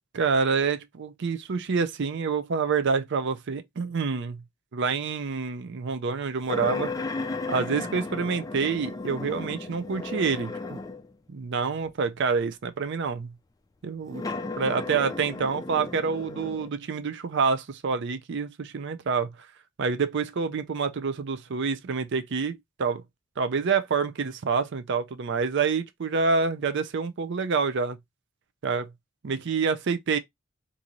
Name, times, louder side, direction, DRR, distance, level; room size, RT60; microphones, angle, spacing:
voice 1, 0.1-4.4 4.7-6.9 7.5-10.8 11.3-13.3 13.8-14.2 14.6-19.3 19.8-23.0 23.4-28.0 28.6-28.9 29.2-30.2, right 5 dB, 60° right, 0.5 m, -27 dB
sound 1, 6.5-11.1 11.9-12.0 14.1-16.7, left 3 dB, 20° left, 0.4 m, -34 dB
3.0 x 2.6 x 3.8 m
head